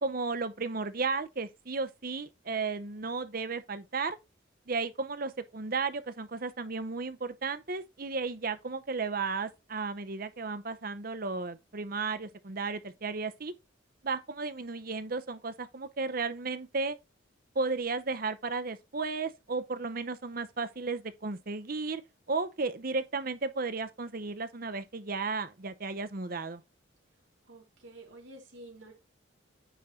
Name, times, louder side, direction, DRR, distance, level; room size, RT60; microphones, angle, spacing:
voice 1, 0.0-4.2 4.7-13.5 14.0-17.0 17.5-22.0 22.3-26.6, right 4 dB, 50° right, 0.8 m, -34 dB
voice 2, 27.5-28.9, right 1 dB, 75° right, 3.3 m, -50 dB
9.3 x 3.8 x 4.3 m
head